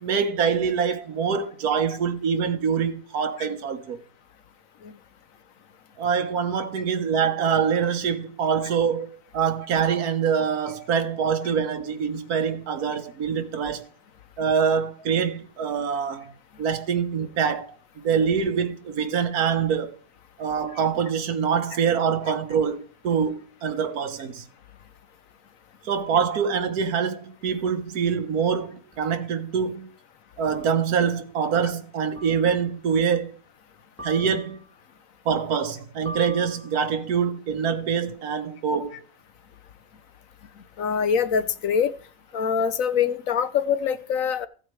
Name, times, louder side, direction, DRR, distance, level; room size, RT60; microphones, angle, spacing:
voice 1, 0.0-4.0 6.0-9.1 9.3-13.9 14.4-16.3 16.6-19.9 20.4-24.4 25.8-29.9 30.4-33.4 34.0-34.6 35.2-39.0, right 6 dB, 75° right, 1.5 m, -25 dB
sound 1, 28.9-29.0 30.5-30.9 32.2-32.7 34.0-34.8 36.1-37.0, left 1 dB, 10° right, 3.7 m, -42 dB
voice 2, 40.8-42.0 42.3-44.5, left 7 dB, 65° left, 1.1 m, -24 dB
15.0 x 8.8 x 3.1 m
omnidirectional pair, 1.6 m